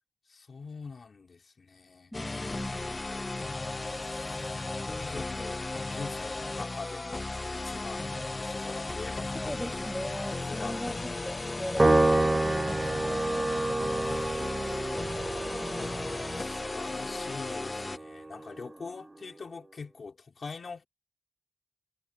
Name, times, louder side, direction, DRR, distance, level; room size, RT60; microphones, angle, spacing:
voice 1, 0.3-2.1 3.8-4.7 4.9-9.5 10.4-11.2 14.0-15.2 16.3-20.8, left 4 dB, 60° left, 4.1 m, -44 dB
sound 1, 2.1-18.0, left 2 dB, 30° left, 0.9 m, -35 dB
voice 2, 2.1-3.0 9.3-10.9 11.2-13.5, equal, 5° left, 2.9 m, -39 dB
Piano, 11.8-18.4, right 2 dB, 25° right, 0.6 m, -28 dB
wide cardioid pair, 120°, 0 cm